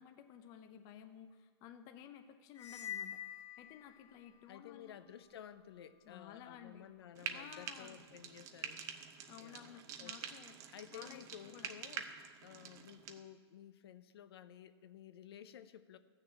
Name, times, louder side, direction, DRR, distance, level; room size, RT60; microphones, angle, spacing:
voice 1, 0.0-3.2 3.6-5.0 6.0-6.9 7.3-8.0 9.3-10.6 10.9-11.7, left 9 dB, 25° left, 7 dB, 0.6 m, -54 dB
sound 1, 2.5-4.4, left 10 dB, 90° left, 1.3 m, -46 dB
voice 2, 4.5-9.0 9.4-10.3 10.7-16.0, left 9 dB, 60° left, 12 dB, 0.7 m, -54 dB
Frying (food), 7.1-13.2, right 7 dB, 20° right, 0.6 m, -47 dB
14.5 x 6.6 x 7.4 m, 1.5 s
hypercardioid pair, 155°, 14 cm